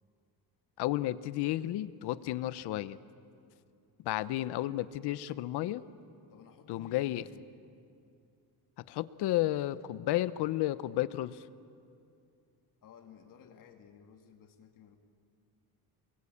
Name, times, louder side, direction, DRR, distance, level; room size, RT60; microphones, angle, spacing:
voice 1, 0.8-3.0 4.0-5.8 6.7-7.2 8.9-11.4, left 15 dB, 90° left, 15 dB, 0.9 m, -32 dB
voice 2, 6.3-7.5 12.8-15.0, left 7 dB, 55° left, 4 dB, 2.6 m, -56 dB
28.0 x 22.0 x 8.6 m, 2.4 s
cardioid pair, 150°, 38 cm